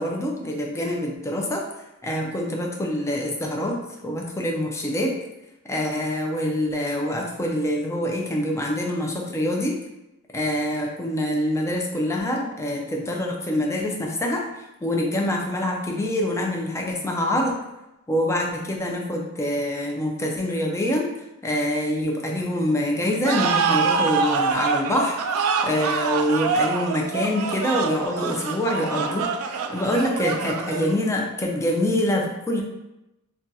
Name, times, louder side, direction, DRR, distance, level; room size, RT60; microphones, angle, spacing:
voice 1, 0.0-1.6 2.0-5.1 5.7-9.8 10.3-14.4 14.8-17.6 18.1-21.1 21.4-32.6, left 1 dB, 15° left, 0 dB, 0.4 m, -25 dB
sound 1, 23.2-31.1, right 5 dB, 75° right, 0.3 m, -25 dB
2.5 x 2.3 x 3.9 m, 0.96 s
head